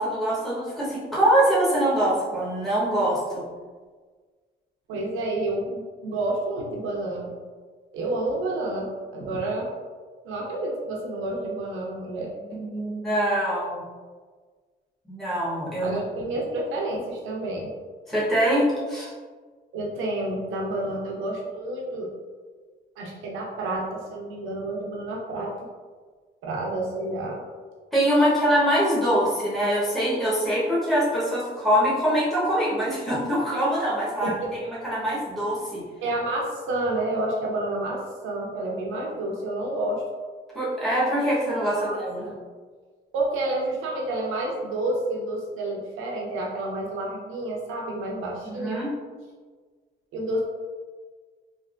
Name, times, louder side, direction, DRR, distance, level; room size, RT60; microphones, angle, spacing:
voice 1, 0.0-3.4 12.5-13.8 15.1-16.0 18.1-19.1 27.9-35.8 40.5-42.3 48.4-48.9, equal, ahead, -9 dB, 1.1 m, -24 dB
voice 2, 4.9-7.3 7.9-9.7 10.2-12.6 15.8-17.7 19.7-22.1 23.0-25.5 26.4-27.4 34.2-34.5 36.0-40.0 41.7-42.3 43.1-48.8 50.1-50.4, right 2 dB, 90° right, -2 dB, 0.7 m, -29 dB
3.4 x 2.5 x 2.4 m, 1.5 s
cardioid pair, 90°, 20 cm